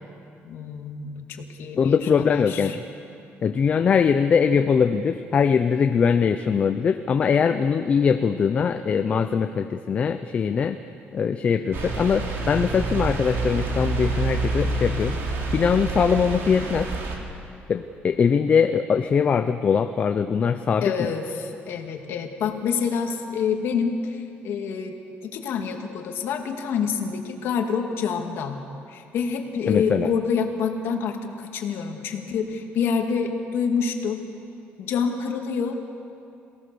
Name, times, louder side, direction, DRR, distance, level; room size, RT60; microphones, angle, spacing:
voice 1, 0.4-2.8 17.7-17.8 20.8-28.6 28.9-34.2 34.8-35.8, left 6 dB, 60° left, 4 dB, 2.1 m, -27 dB
voice 2, 1.8-2.8 3.4-10.8 11.1-15.2 15.5-16.9 17.7-21.1 29.7-30.1, left 6 dB, 30° left, 8 dB, 0.6 m, -21 dB
sound 1, 11.7-17.2, right 3 dB, 60° right, 3.2 m, -27 dB
27.0 x 18.0 x 6.8 m, 2.6 s
cardioid pair, 170°, 4 cm